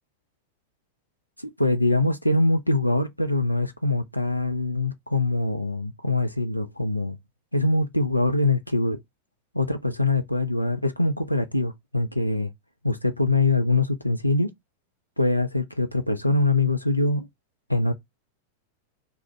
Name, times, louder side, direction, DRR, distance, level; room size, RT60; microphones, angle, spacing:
voice 1, 1.4-7.2 7.5-9.0 9.5-12.5 12.8-14.5 15.2-17.3 17.7-17.9, left 2 dB, 90° left, 0.3 m, -23 dB
2.4 x 2.0 x 3.3 m
figure-of-eight pair, 90°, 0 cm